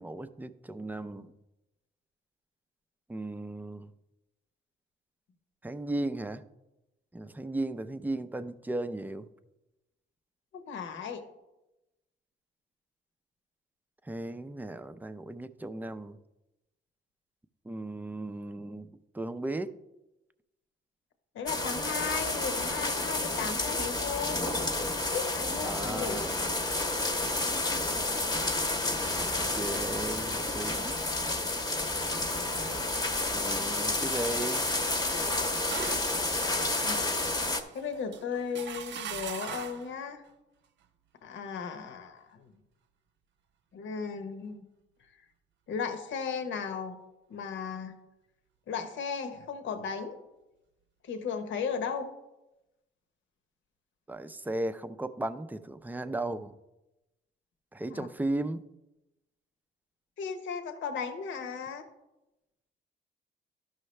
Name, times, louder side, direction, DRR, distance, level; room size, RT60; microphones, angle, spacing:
voice 1, 0.0-1.3 3.1-3.9 5.6-6.4 7.1-9.3 14.1-16.2 17.7-18.9 19.1-19.7 25.6-26.3 29.5-30.9 33.3-34.7 54.1-56.5 57.7-58.6, right 2 dB, 10° right, 11 dB, 0.5 m, -36 dB
voice 2, 10.5-11.2 21.3-24.4 25.1-26.3 26.7-26.9 33.6-33.8 36.8-37.0 37.7-40.2 41.2-42.5 43.7-44.6 45.7-47.0 47.3-47.9 48.7-50.2 51.0-52.1 57.9-58.1 60.2-61.9, left 6 dB, 75° left, 8 dB, 1.0 m, -36 dB
sound 1, 21.5-37.6, left 2 dB, 20° left, 0.9 m, -30 dB
sound 2, 35.2-39.9, right 8 dB, 65° right, 0.6 m, -42 dB
12.5 x 5.6 x 3.2 m, 0.96 s
cardioid pair, 90°, 20 cm